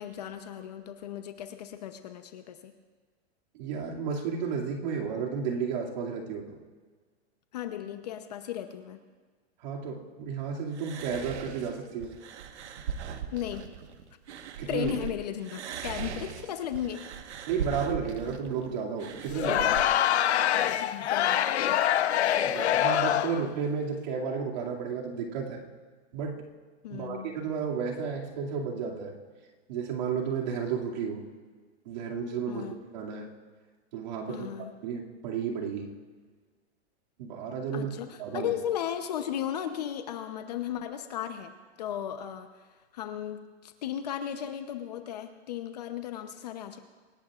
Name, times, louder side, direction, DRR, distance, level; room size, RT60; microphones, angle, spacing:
voice 1, 0.0-2.7 7.5-9.0 13.3-13.7 14.7-17.1 20.8-21.5 26.8-27.3 32.5-32.8 34.3-34.7 37.7-42.6 42.9-46.8, left 10 dB, 35° left, 8 dB, 0.8 m, -35 dB
voice 2, 3.5-6.6 9.6-12.1 14.6-15.0 17.5-19.7 22.5-25.6 26.1-26.4 26.9-29.2 29.7-31.3 31.9-33.3 33.9-35.9 37.2-37.9 38.2-38.5, right 6 dB, 40° right, -1 dB, 2.4 m, -32 dB
sound 1, 10.7-15.1 15.4-19.9, right 8 dB, 75° right, 1.4 m, -39 dB
Crowd, 19.3-23.5, left 11 dB, 75° left, 0.9 m, -25 dB
25.5 x 18.0 x 2.5 m, 1.5 s
supercardioid pair, 180°, 34 cm